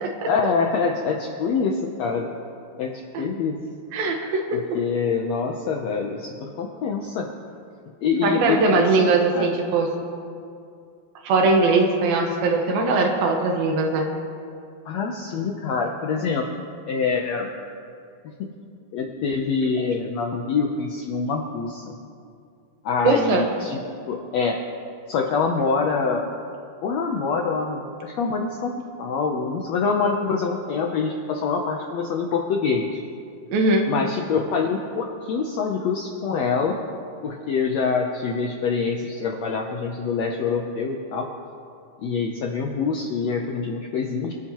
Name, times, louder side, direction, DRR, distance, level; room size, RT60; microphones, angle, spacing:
voice 1, 0.2-2.3 2.8-3.6 4.5-7.3 8.0-9.5 14.8-17.5 18.4-18.5 18.9-22.0 22.8-23.8 24.1-24.6 25.1-26.2 26.8-33.0 33.9-36.8 37.2-41.3 42.0-44.3, left 5 dB, 80° left, 1 dB, 1.5 m, -25 dB
voice 2, 3.9-4.4 8.2-9.9 11.2-14.1 23.0-23.5 33.5-33.9, right 3 dB, 85° right, 2 dB, 3.2 m, -20 dB
25.5 x 11.5 x 3.0 m, 2.4 s
omnidirectional pair, 4.1 m